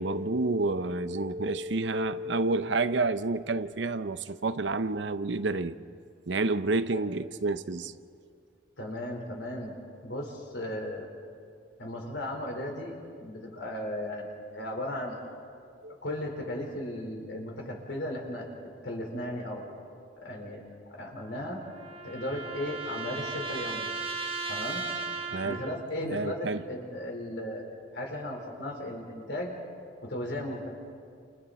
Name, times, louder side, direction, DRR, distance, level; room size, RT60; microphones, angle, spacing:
voice 1, 0.0-5.8 6.3-7.9 15.8-15.9 25.3-25.6 26.0-26.6, right 3 dB, 65° right, 0.7 m, -29 dB
voice 2, 8.8-9.7 10.0-11.1 11.8-12.9 13.2-15.2 16.0-18.5 18.8-19.7 20.2-20.6 20.9-21.6 22.0-23.9 24.5-24.8 25.4-27.6 27.9-29.5 30.0-30.7, left 1 dB, 70° left, 4.5 m, -36 dB
sound 1, 21.2-25.9, right 4 dB, 30° right, 1.1 m, -36 dB
29.5 x 29.0 x 4.3 m
head